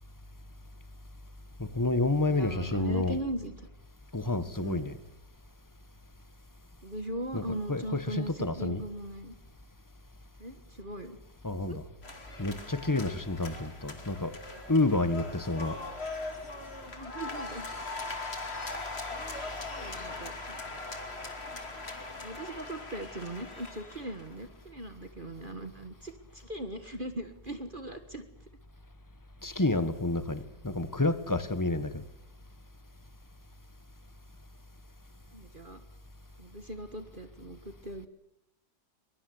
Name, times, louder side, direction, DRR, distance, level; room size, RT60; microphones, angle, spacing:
voice 1, 1.6-3.2 4.1-5.0 7.3-8.8 11.4-11.8 12.4-14.4 14.7-15.8 29.4-32.0, left 2 dB, 10° left, 1.3 m, -29 dB
voice 2, 2.3-3.5 4.6-4.9 6.8-9.3 10.4-11.2 11.7-11.8 17.0-17.7 19.8-20.8 22.2-28.3 35.3-35.8 36.4-38.1, right 1 dB, 30° right, 1.7 m, -39 dB
sound 1, 12.0-24.4, left 3 dB, 35° left, 2.8 m, -40 dB
22.5 x 22.0 x 8.0 m
omnidirectional pair, 1.9 m